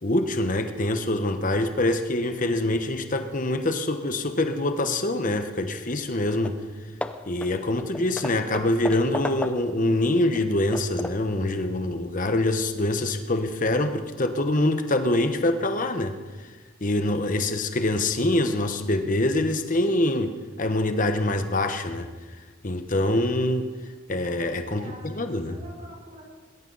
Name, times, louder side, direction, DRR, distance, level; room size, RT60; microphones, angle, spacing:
voice 1, 0.0-6.6 7.3-16.2 16.8-20.3 20.6-22.1 22.6-23.7 24.1-25.6, left 1 dB, 40° left, 7 dB, 1.1 m, -25 dB
Hammer / Wood, 6.1-6.2 6.4-6.7 7.0-9.9 10.3-11.4, left 1 dB, 5° left, 0.5 m, -35 dB
voice 2, 24.7-26.2, right 1 dB, 35° right, -3 dB, 5.5 m, -46 dB
20.0 x 17.0 x 4.1 m, 1.4 s
head